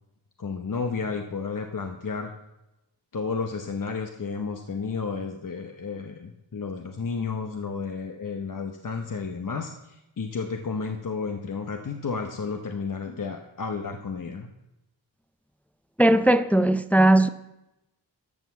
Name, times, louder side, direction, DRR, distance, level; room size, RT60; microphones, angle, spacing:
voice 1, 0.4-2.3 3.1-14.5, left 5 dB, 45° left, 0.9 m, -32 dB
voice 2, 16.0-17.3, right 1 dB, 5° left, 0.5 m, -18 dB
12.0 x 6.1 x 7.1 m
cardioid pair, 60°, 44 cm